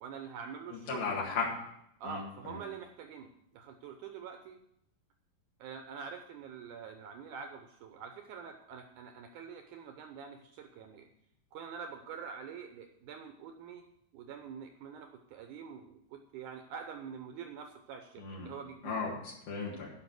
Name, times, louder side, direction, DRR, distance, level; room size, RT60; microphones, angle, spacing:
voice 1, 0.0-1.1 2.0-4.6 5.6-11.1 11.5-13.9 14.1-19.0, right 6 dB, 85° right, 6 dB, 1.7 m, -45 dB
voice 2, 0.7-1.5 2.0-2.6 18.2-18.5 18.8-19.9, left 5 dB, 65° left, -3 dB, 3.5 m, -36 dB
11.5 x 5.4 x 8.0 m, 0.77 s
omnidirectional pair, 4.5 m